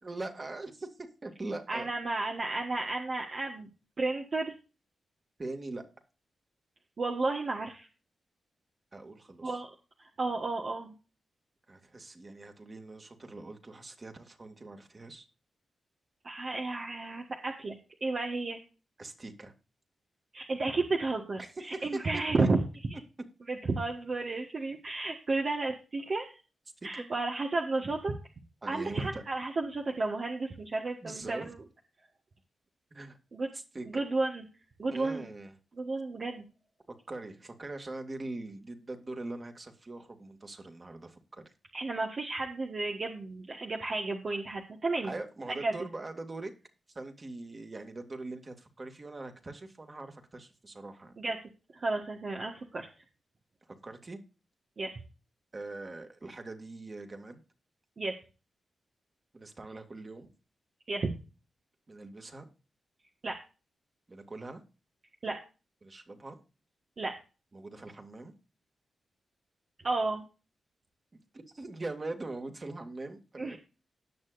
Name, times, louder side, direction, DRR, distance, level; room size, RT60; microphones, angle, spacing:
voice 1, 0.0-1.9 5.4-5.8 8.9-9.6 11.7-15.2 19.0-19.5 21.4-22.0 22.4-22.5 26.8-27.0 28.6-29.2 31.0-31.5 32.9-33.2 33.5-34.0 34.9-35.5 37.1-41.4 45.0-46.5 46.9-51.1 53.8-54.2 55.5-57.4 59.3-60.3 61.9-62.5 64.1-64.6 65.8-66.4 67.5-68.3 71.1-71.2 71.5-73.6, right 2 dB, 40° right, 5 dB, 2.4 m, -42 dB
voice 2, 1.7-3.7 4.0-4.5 7.0-7.9 9.4-9.7 10.0-10.9 16.2-18.6 20.3-22.6 23.5-26.3 26.8-28.1 28.7-31.6 33.3-33.5 33.8-34.4 34.8-35.3 35.7-36.4 41.7-45.1 45.5-45.7 51.2-51.4 51.7-52.9 54.8-54.9 58.0-58.1 60.9-61.1 63.2-63.4 65.2-65.4 67.0-67.1 69.8-70.3 73.4-73.6, right 3 dB, 55° right, 1 dB, 1.5 m, -32 dB
18.5 x 6.7 x 2.6 m, 0.32 s
cardioid pair, 50°, 0 cm